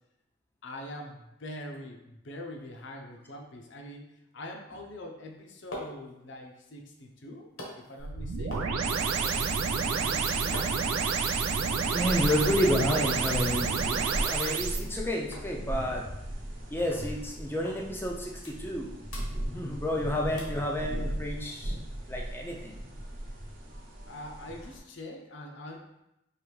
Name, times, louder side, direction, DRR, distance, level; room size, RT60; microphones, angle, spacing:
voice 1, 0.6-9.5 9.9-10.5 12.3-12.6 24.1-26.0, left 1 dB, 60° left, 2 dB, 0.6 m, -44 dB
sound 1, 5.2-13.1 13.4-14.1 14.4-14.6 14.9-15.0 15.3-16.6 16.9-17.1 17.6-17.8 18.2-18.8 19.1-20.0 20.4-20.7 21.1-21.2, equal, 80° left, 1.1 m, -46 dB
sound 2, 8.0-14.8, right 5 dB, 85° right, 0.4 m, -29 dB
voice 2, 11.9-16.0 16.7-18.9 19.4-21.7 22.1-22.8, left 1 dB, 10° left, 0 dB, 0.4 m, -30 dB
sound 3, 11.9-24.8, right 1 dB, 40° right, 0.8 m, -38 dB
4.9 x 2.6 x 3.1 m, 0.89 s
head